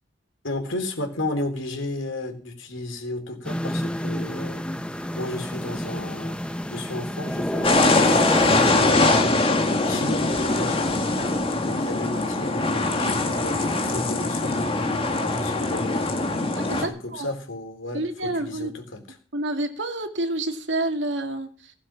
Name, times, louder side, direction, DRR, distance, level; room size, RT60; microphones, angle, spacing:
voice 1, 0.4-4.7 5.2-6.4 6.7-10.9 11.6-16.1 16.7-19.0, left 2 dB, 85° left, 5 dB, 3.7 m, -33 dB
sound 1, 3.4-8.7, equal, 5° left, 0.8 m, -29 dB
sound 2, 7.6-16.9, left 2 dB, 30° left, 2.0 m, -22 dB
voice 2, 16.6-17.3 17.9-18.7 19.3-21.7, right 1 dB, 65° right, 5 dB, 2.3 m, -28 dB
17.0 x 7.5 x 7.4 m, 0.44 s
head